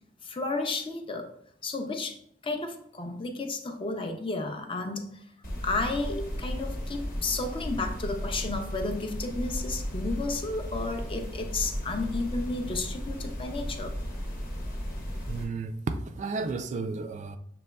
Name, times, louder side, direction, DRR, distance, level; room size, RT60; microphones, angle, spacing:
voice 1, 0.2-1.3 1.6-2.2 2.4-5.2 5.6-13.9, left 3 dB, 30° left, 5 dB, 0.5 m, -32 dB
sound 1, 5.4-15.4, equal, 55° left, 1.0 m, -35 dB
voice 2, 15.3-17.4, right 3 dB, 45° right, 8 dB, 0.3 m, -33 dB
6.8 x 3.0 x 2.2 m, 0.68 s
head